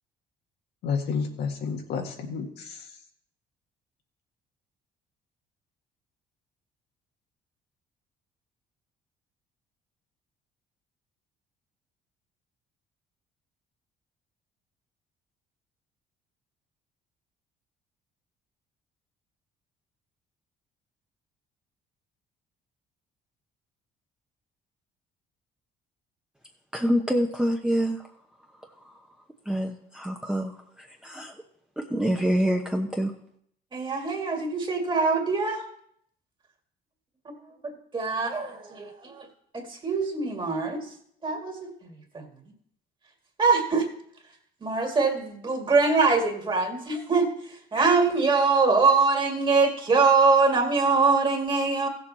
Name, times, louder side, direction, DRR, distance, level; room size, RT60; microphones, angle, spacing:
voice 1, 0.8-2.9, left 5 dB, 75° left, 1.7 m, -30 dB
voice 2, 26.7-28.1 28.6-29.1 29.4-31.3 31.8-33.1, equal, 5° right, 0.9 m, -27 dB
voice 3, 33.7-35.7 37.3-37.4 37.6-39.3 39.5-40.9 41.2-42.3 43.4-43.9 44.6-51.9, right 4 dB, 30° right, 2.1 m, -23 dB
15.5 x 7.0 x 4.1 m
cardioid pair, 110°, 17 cm